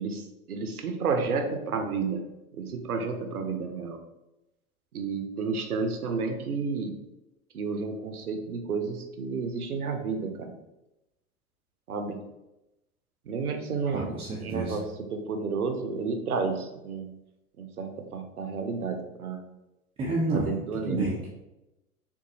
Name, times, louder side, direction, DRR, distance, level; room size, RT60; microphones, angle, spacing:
voice 1, 0.0-4.0 4.9-7.0 7.5-10.6 11.9-12.2 13.3-14.2 14.4-17.2 17.6-19.5 20.3-21.1, right 4 dB, 90° right, 6 dB, 0.6 m, -31 dB
voice 2, 13.9-14.8 20.0-20.5 20.8-21.3, right 2 dB, 15° right, -5 dB, 0.4 m, -29 dB
3.7 x 2.5 x 2.7 m, 0.93 s
figure-of-eight pair, 85°, 43 cm